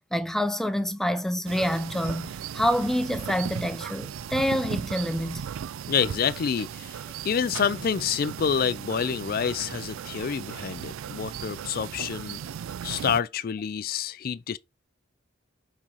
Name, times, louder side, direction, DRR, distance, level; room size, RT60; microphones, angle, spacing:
voice 1, 0.1-5.5, equal, ahead, 0.6 m, -27 dB
sound 1, 1.5-13.2, right 8 dB, 75° right, 0.3 m, -37 dB
voice 2, 5.9-7.0 7.2-12.4 12.8-14.6, left 7 dB, 45° left, 0.4 m, -28 dB
4.7 x 4.3 x 5.4 m
head